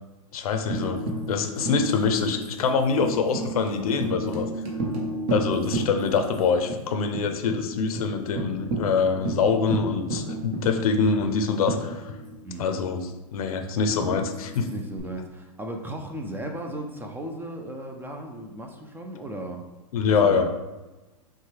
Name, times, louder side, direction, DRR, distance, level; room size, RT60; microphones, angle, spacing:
voice 1, 0.3-1.0 1.3-4.5 5.3-12.1 12.6-14.6 19.9-20.4, left 5 dB, 70° left, 6 dB, 0.6 m, -24 dB
Tambourine, 0.7-6.4 6.7-6.8 7.1-7.6 8.0-8.1 8.4-12.5 14.0-15.0, right 2 dB, 50° right, 1.2 m, -32 dB
voice 2, 14.6-19.6 20.1-20.4, right 1 dB, 10° right, 3 dB, 0.4 m, -36 dB
6.3 x 2.3 x 3.3 m, 1.1 s
hypercardioid pair, 115°, 19 cm